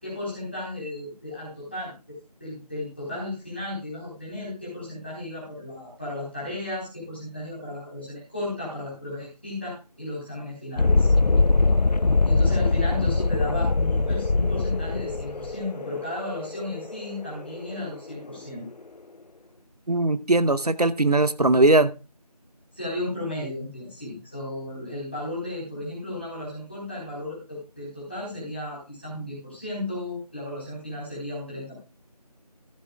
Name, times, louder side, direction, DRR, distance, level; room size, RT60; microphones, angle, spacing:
voice 1, 0.0-11.1 12.2-18.7 22.7-31.8, left 1 dB, 15° left, -7 dB, 3.8 m, -34 dB
Thunderstorm, 10.8-18.2, left 3 dB, 80° left, 0.6 m, -22 dB
voice 2, 19.9-21.9, right 2 dB, 70° right, 14 dB, 0.8 m, -20 dB
14.0 x 11.0 x 2.3 m, 0.31 s
figure-of-eight pair, 175°, 21 cm